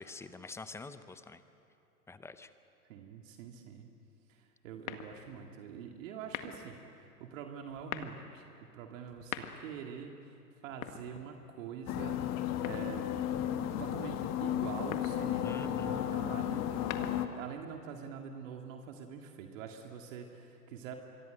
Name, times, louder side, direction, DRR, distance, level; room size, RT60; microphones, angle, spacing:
voice 1, 0.0-1.4 2.1-2.5 15.4-16.1, left 3 dB, 5° left, 11 dB, 0.6 m, -46 dB
voice 2, 2.9-3.9 4.3-8.5 8.7-10.4 10.6-13.1 13.8-21.0, right 7 dB, 55° right, 3 dB, 2.2 m, -45 dB
sound 1, 4.8-5.4 6.2-6.8 7.7-8.2 9.1-9.9 10.7-11.6 12.6-13.3 14.7-15.3 16.6-17.5, left 10 dB, 60° left, 1.9 m, -43 dB
sound 2, 11.9-17.3, left 11 dB, 35° left, 1.6 m, -34 dB
26.5 x 23.0 x 7.9 m, 2.7 s
hypercardioid pair, 115°, 47 cm